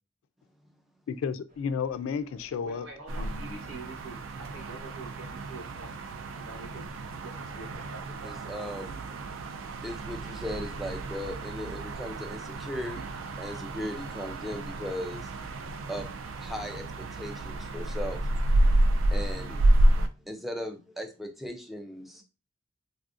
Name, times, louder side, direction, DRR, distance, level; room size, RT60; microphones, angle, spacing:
voice 1, 1.1-2.9 3.2-3.5, left 6 dB, 90° left, 0.3 m, -32 dB
sound 1, 1.5-18.1, equal, 45° right, 0.9 m, -57 dB
voice 2, 2.6-5.9 6.3-6.9 7.2-8.4, right 3 dB, 90° right, 1.1 m, -45 dB
sound 2, 3.1-20.1, right 1 dB, 75° right, 0.3 m, -30 dB
voice 3, 8.2-9.1 9.8-15.3 15.9-16.1 16.4-18.3 19.0-22.2, equal, ahead, 0.4 m, -38 dB
3.3 x 2.4 x 2.5 m
head